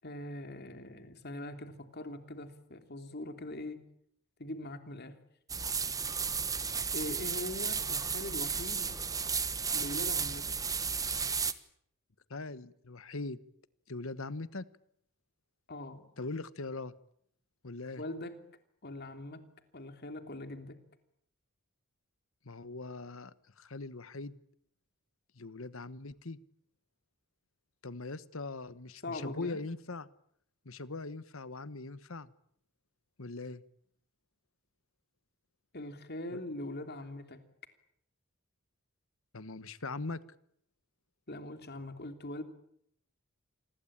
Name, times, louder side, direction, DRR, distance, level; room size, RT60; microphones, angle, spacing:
voice 1, 0.0-3.8 4.4-5.2 6.9-9.0 9.7-10.5 15.7-16.1 18.0-18.4 18.8-19.5 19.7-20.8 29.0-29.6 35.7-37.4 41.3-42.4, left 1 dB, 45° left, 8 dB, 3.1 m, -42 dB
sound 1, 5.5-11.5, right 6 dB, 15° right, 1.2 m, -33 dB
voice 2, 12.3-13.4 13.9-14.6 16.2-16.9 17.6-18.0 22.4-24.4 25.4-26.4 27.8-30.1 30.6-32.3 33.2-33.6 36.3-36.4 39.3-40.2, left 3 dB, 65° left, 16 dB, 1.3 m, -41 dB
27.5 x 21.5 x 8.8 m, 0.70 s
head